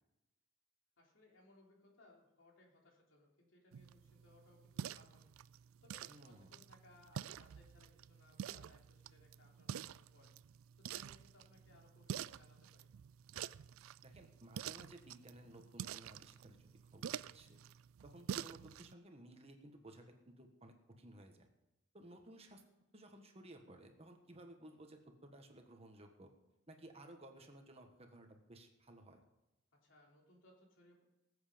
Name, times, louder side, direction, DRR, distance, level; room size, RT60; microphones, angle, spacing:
voice 1, 1.0-5.2 5.8-10.3 10.8-12.9 29.8-31.0, left 2 dB, 65° left, -1 dB, 3.5 m, -66 dB
sound 1, 3.7-18.9, right 9 dB, 85° right, 0.3 m, -48 dB
voice 2, 6.1-6.5 14.0-17.6 18.0-21.5 21.9-22.6 22.9-26.3 26.7-29.2, right 1 dB, 30° right, 4 dB, 1.4 m, -57 dB
20.0 x 8.2 x 5.2 m, 0.96 s
head